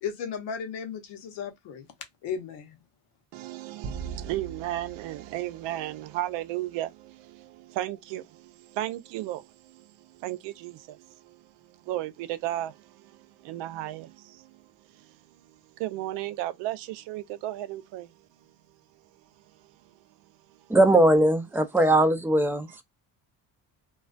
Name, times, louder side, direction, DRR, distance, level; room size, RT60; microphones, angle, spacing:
voice 1, 0.0-1.9 2.2-2.8, left 7 dB, 85° left, 0.9 m, -35 dB
voice 2, 3.3-14.5 15.0-15.1 15.5-18.1, right 14 dB, 85° right, 0.5 m, -35 dB
sound 1, 3.8-6.4, right 6 dB, 45° right, 0.7 m, -41 dB
voice 3, 20.7-22.8, right 1 dB, 5° right, 0.3 m, -20 dB
2.3 x 2.2 x 2.4 m
cardioid pair, 90°, 41 cm